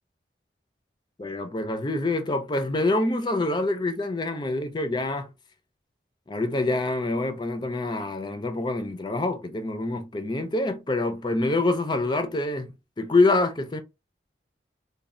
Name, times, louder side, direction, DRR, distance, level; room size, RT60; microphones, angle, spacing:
voice 1, 1.2-5.3 6.3-13.8, left 2 dB, 25° left, 0.4 m, -26 dB
3.1 x 2.2 x 2.5 m
head